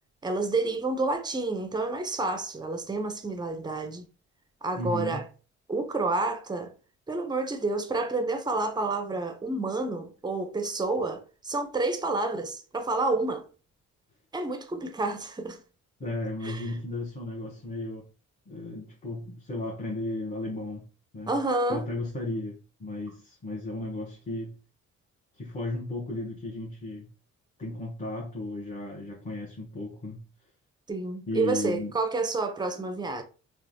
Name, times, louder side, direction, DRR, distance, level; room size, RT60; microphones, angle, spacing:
voice 1, 0.2-4.1 4.6-5.2 5.7-6.7 7.1-13.5 14.3-15.6 16.4-16.7 21.3-21.9 30.9-33.2, right 3 dB, 15° right, 0.5 m, -29 dB
voice 2, 4.8-5.3 16.0-18.0 18.5-20.9 21.1-21.3 21.7-24.6 25.4-27.1 27.6-30.3 31.3-31.9, left 2 dB, 25° left, 0.8 m, -34 dB
3.1 x 2.1 x 2.6 m
cardioid pair, 90°, 30 cm